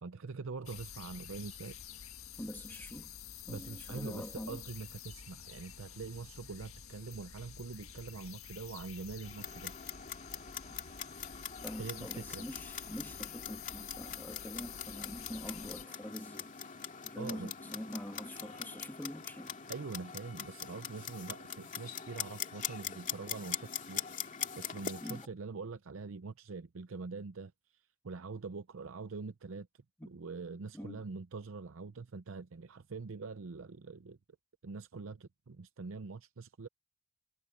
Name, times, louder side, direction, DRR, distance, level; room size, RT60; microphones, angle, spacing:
voice 1, 0.0-1.8 3.5-9.7 11.8-12.4 17.2-17.5 19.7-27.5 28.0-29.7 30.1-34.2 34.6-36.7, right 4 dB, 70° right, 0.6 m, -44 dB
sound 1, 0.7-15.8, left 8 dB, 90° left, 1.8 m, -49 dB
voice 2, 2.4-3.1 3.5-4.6 11.6-16.5 17.0-19.6 25.0-25.3 30.0-30.1 30.7-31.0, equal, 10° left, 1.9 m, -44 dB
Clock, 9.2-25.3, left 8 dB, 35° left, 2.5 m, -43 dB
head